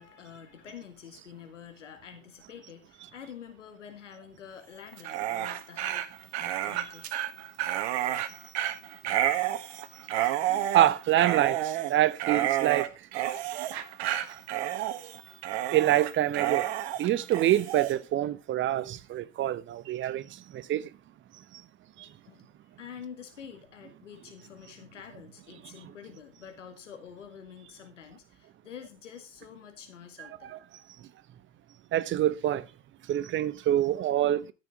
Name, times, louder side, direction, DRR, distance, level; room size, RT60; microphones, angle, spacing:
voice 1, 0.0-6.1 6.4-7.2 8.7-9.0 22.3-22.5 22.8-30.5, left 8 dB, 75° left, 2.1 m, -47 dB
Dog, 4.9-17.9, right 12 dB, 60° right, 1.5 m, -30 dB
voice 2, 10.5-12.9 15.6-16.7 17.0-20.9 21.5-21.6 22.0-22.1 30.2-30.6 31.9-32.7 33.1-34.5, right 12 dB, 30° right, 1.0 m, -26 dB
14.0 x 6.4 x 4.7 m
figure-of-eight pair, 80°, 37 cm